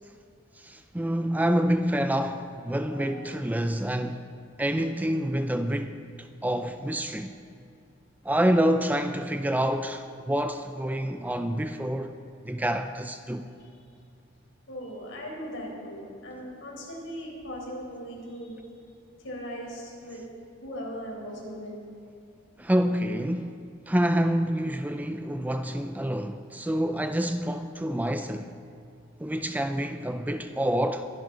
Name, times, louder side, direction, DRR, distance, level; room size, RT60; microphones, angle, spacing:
voice 1, 0.6-4.3 4.6-7.3 8.2-12.2 12.4-13.5 22.6-23.6 23.9-28.5 29.2-31.1, equal, 10° right, 0.4 m, -27 dB
voice 2, 2.9-3.3 13.6-13.7 14.7-18.5 19.2-20.2 20.6-21.7, equal, 70° left, 4.3 m, -39 dB
23.0 x 11.5 x 3.9 m
head